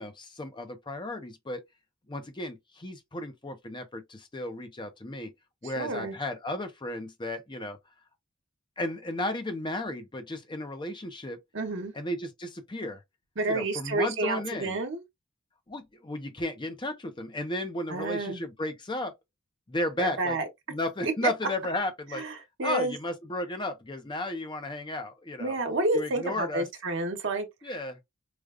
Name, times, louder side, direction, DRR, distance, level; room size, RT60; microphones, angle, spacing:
voice 1, 0.0-1.6 2.1-5.3 5.6-7.8 8.8-11.4 11.9-13.0 13.5-14.8 15.7-19.1 19.7-20.4 20.7-22.2 22.6-25.6 25.9-26.7 27.6-28.0, left 1 dB, 25° left, 0.6 m, -34 dB
voice 2, 5.8-6.1 11.5-11.9 13.4-15.0 17.9-18.4 20.0-20.5 21.2-21.3 22.2-23.0 25.4-27.5, right 2 dB, 60° right, 1.1 m, -29 dB
4.9 x 2.3 x 2.3 m
head